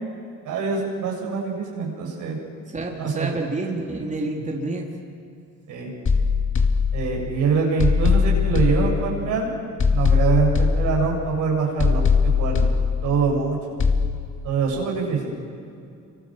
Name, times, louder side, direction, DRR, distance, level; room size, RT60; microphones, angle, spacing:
voice 1, 0.4-2.4 3.0-3.3 5.7-5.9 6.9-9.5 9.9-12.0 12.4-12.7 13.0-13.6 14.4-15.3, right 5 dB, 85° right, -1 dB, 7.6 m, -24 dB
voice 2, 2.7-4.9, right 2 dB, 25° right, 0 dB, 3.9 m, -28 dB
sound 1, 6.1-7.3 7.8-9.4 9.8-11.4 11.8-13.4 13.8-14.1, left 5 dB, 40° left, 2.6 m, -20 dB
28.5 x 24.5 x 7.6 m, 2.4 s
cardioid pair, 90°, 30 cm